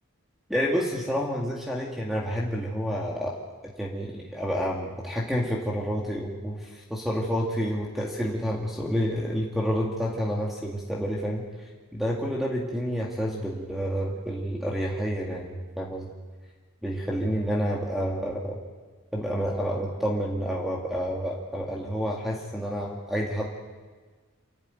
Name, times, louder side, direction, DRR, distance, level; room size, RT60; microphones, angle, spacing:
voice 1, 0.5-3.4 3.8-11.4 11.9-16.1 16.8-18.6 19.1-23.5, equal, ahead, -2 dB, 2.0 m, -29 dB
28.0 x 12.0 x 9.2 m, 1.4 s
head